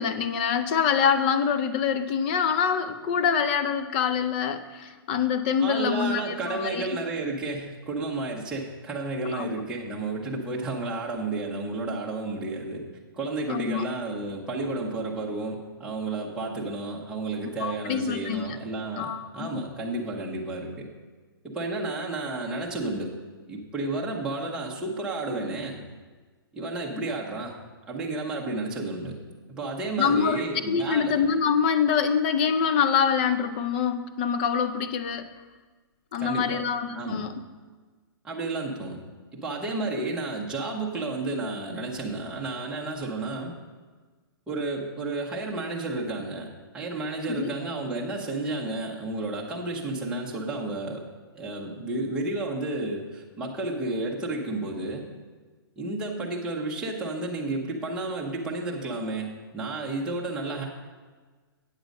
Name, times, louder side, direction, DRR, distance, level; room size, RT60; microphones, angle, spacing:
voice 1, 0.0-6.9 9.3-9.5 13.5-13.8 17.6-18.5 19.0-19.6 26.9-27.0 30.0-35.3 36.1-37.3 47.3-47.5, left 7 dB, 25° left, 11 dB, 0.4 m, -25 dB
voice 2, 5.6-12.9 13.1-20.9 21.4-23.2 23.5-25.8 26.5-27.5 27.9-29.2 29.5-31.2 36.2-36.6 36.9-37.2 38.2-39.0 39.3-43.5 44.5-46.5 46.7-51.0 51.3-55.0 55.8-60.6, right 2 dB, 5° right, -4 dB, 0.8 m, -31 dB
8.2 x 7.8 x 5.2 m, 1.4 s
hypercardioid pair, 165°, 13 cm